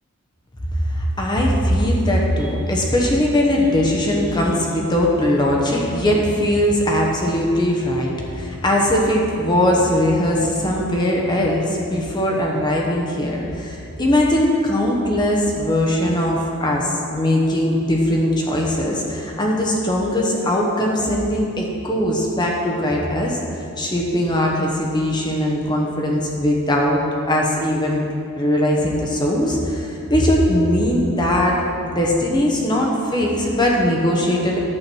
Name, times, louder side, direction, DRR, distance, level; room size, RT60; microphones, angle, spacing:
voice 1, 0.8-23.4 23.8-27.0 27.3-28.1 28.4-31.6 31.8-34.6, left 1 dB, 20° left, -2 dB, 1.0 m, -20 dB
11.0 x 7.8 x 4.6 m, 2.6 s
head